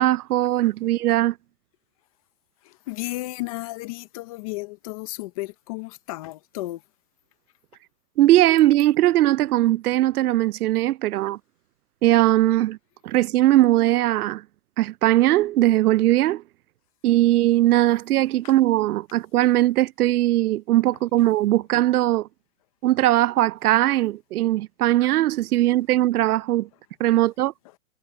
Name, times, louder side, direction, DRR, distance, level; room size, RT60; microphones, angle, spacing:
voice 1, 0.0-1.3 8.2-11.4 12.0-12.8 13.0-14.4 14.8-16.4 17.0-22.3 22.8-26.7 27.0-27.5, right 15 dB, 90° right, 0.6 m, -20 dB
voice 2, 2.6-6.8 18.4-18.5 27.2-27.3, left 20 dB, 25° left, 0.8 m, -33 dB
hypercardioid pair, 165°, 43 cm